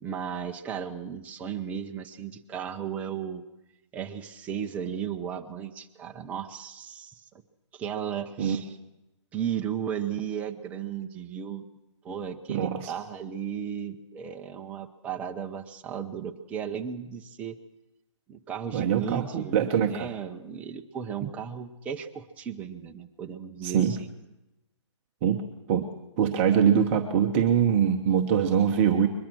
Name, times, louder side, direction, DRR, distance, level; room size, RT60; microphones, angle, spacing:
voice 1, 0.0-3.4 3.9-7.2 7.7-8.8 9.3-11.6 12.0-17.6 18.3-24.1, right 8 dB, 10° right, 4 dB, 0.8 m, -35 dB
voice 2, 12.5-12.9 18.7-20.1 21.2-21.3 23.6-23.9 25.2-25.4 25.7-25.9 26.2-29.1, right 8 dB, 25° right, 2 dB, 1.1 m, -23 dB
22.5 x 21.5 x 6.3 m, 0.94 s
hypercardioid pair, 160°, 16 cm